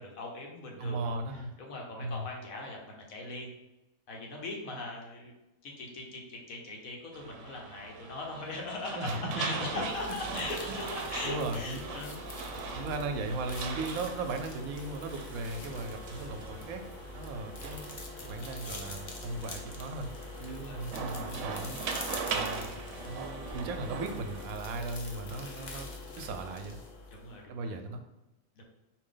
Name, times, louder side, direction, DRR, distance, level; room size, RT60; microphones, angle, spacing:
voice 1, 0.0-3.5 4.1-5.3 5.6-12.5 13.7-14.0 17.3-17.5 20.5-21.1 25.3-25.4 27.1-27.7 28.6-28.7, left 2 dB, 75° left, 0 dB, 1.3 m, -40 dB
voice 2, 0.8-1.5 2.0-2.3 8.9-10.8 11.2-11.8 12.7-16.8 17.1-17.8 18.2-20.1 20.4-21.8 22.3-22.7 23.0-25.9 26.2-26.8 27.5-28.0, right 2 dB, 90° right, 6 dB, 1.0 m, -37 dB
sound 1, 7.1-24.5, right 5 dB, 70° right, 0.8 m, -41 dB
sound 2, 9.5-27.4, left 3 dB, 45° left, 0.6 m, -44 dB
4.4 x 2.7 x 3.7 m, 0.99 s
omnidirectional pair, 1.4 m